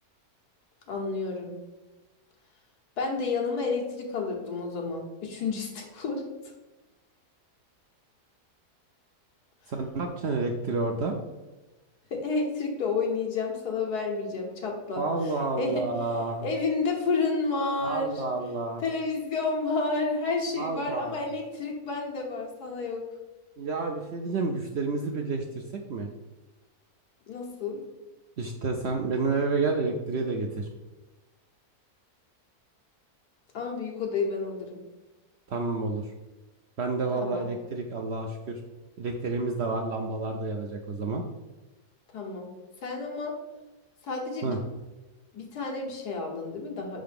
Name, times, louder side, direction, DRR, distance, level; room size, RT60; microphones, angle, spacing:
voice 1, 0.9-1.5 3.0-6.2 12.1-15.1 15.6-15.8 16.4-18.2 18.8-23.0 27.3-27.8 33.5-34.8 37.2-37.5 42.1-42.5 42.8-43.3 44.0-44.6 45.3-47.0, left 4 dB, 85° left, 1 dB, 1.7 m, -30 dB
voice 2, 9.7-11.2 15.0-16.5 17.8-18.8 20.6-21.2 23.6-26.1 28.4-30.7 35.5-36.1 36.8-38.6 39.0-41.2 44.4-44.6, right 3 dB, 65° right, 3 dB, 0.6 m, -30 dB
5.6 x 3.9 x 5.1 m, 1.1 s
omnidirectional pair, 1.6 m